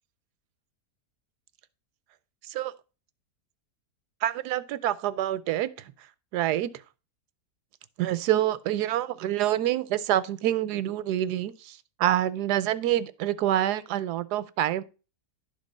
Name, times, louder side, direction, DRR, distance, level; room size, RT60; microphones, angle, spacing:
voice 1, 4.2-5.7 6.3-6.7 8.0-14.8, right 12 dB, 80° right, 1.2 m, -27 dB
11.0 x 3.7 x 5.3 m
omnidirectional pair, 1.7 m